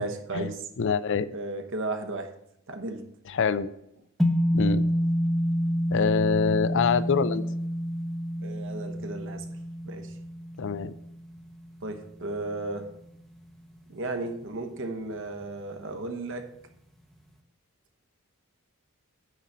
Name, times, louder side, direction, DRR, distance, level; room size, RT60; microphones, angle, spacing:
voice 1, 0.0-0.7 1.3-2.3 2.7-3.1 8.4-9.5 9.8-10.1 11.8-12.9 13.9-16.5, right 2 dB, 60° right, 6 dB, 1.1 m, -34 dB
voice 2, 0.8-1.3 3.3-3.7 4.5-4.8 5.9-7.4 10.6-10.9, left 5 dB, 55° left, 14 dB, 0.4 m, -25 dB
sound 1, 4.2-12.6, equal, ahead, 0.7 m, -28 dB
9.3 x 4.0 x 7.3 m, 0.77 s
head